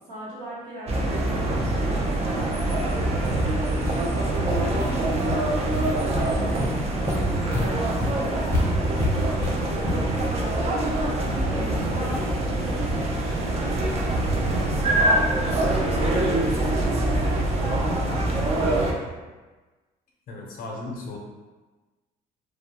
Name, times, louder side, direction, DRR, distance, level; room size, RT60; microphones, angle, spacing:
voice 1, 0.0-3.4 4.3-5.7 6.0-10.8 11.4-19.0, right 1 dB, 85° right, -9 dB, 1.1 m, -40 dB
sound 1, 0.9-18.9, right 1 dB, 40° right, 0.4 m, -24 dB
sound 2, 2.2-2.3 2.7-2.9 3.2-3.3 3.8-3.9 4.3-4.4 4.8-4.9 5.3-5.8 6.1-6.2 6.6-10.2, left 2 dB, 15° left, 0.6 m, -30 dB
voice 2, 20.3-21.2, left 2 dB, 60° left, -2 dB, 0.5 m, -36 dB
2.2 x 2.0 x 2.8 m, 1.3 s
cardioid pair, 110°, 17 cm